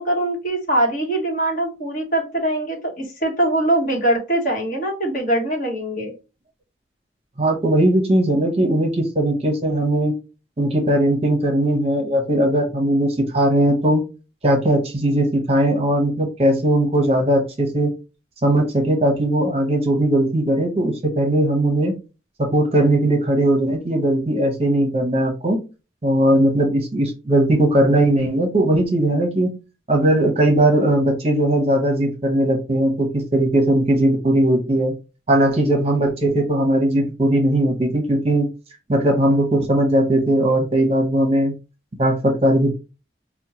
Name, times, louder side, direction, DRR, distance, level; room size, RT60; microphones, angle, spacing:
voice 1, 0.0-6.1, right 1 dB, 45° left, 1 dB, 1.1 m, -22 dB
voice 2, 7.4-10.1 10.6-14.0 14.4-17.9 18.4-21.9 22.4-25.6 26.0-29.5 29.9-34.9 35.3-38.5 38.9-41.5 42.0-42.7, right 1 dB, 35° right, 2 dB, 0.7 m, -18 dB
4.3 x 2.1 x 2.8 m, 0.30 s
head